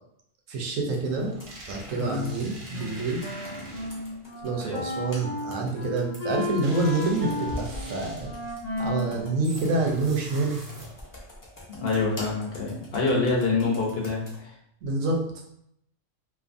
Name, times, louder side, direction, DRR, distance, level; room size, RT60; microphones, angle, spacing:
voice 1, 0.5-1.3 1.7-3.2 4.4-8.3 8.8-10.5 14.8-15.2, right 3 dB, 85° right, 1 dB, 1.0 m, -27 dB
Computer keyboard, 0.9-14.4, left 1 dB, 30° left, 0.4 m, -46 dB
sound 1, 1.1-4.2 6.6-8.4 9.4-11.2, right 1 dB, 55° right, 0.9 m, -43 dB
Wind instrument woodwind instrument, 2.7-10.2, left 3 dB, 80° left, 1.1 m, -35 dB
voice 2, 11.7-14.5, left 3 dB, 60° left, -2 dB, 0.8 m, -26 dB
2.5 x 2.4 x 2.4 m, 0.73 s
omnidirectional pair, 1.3 m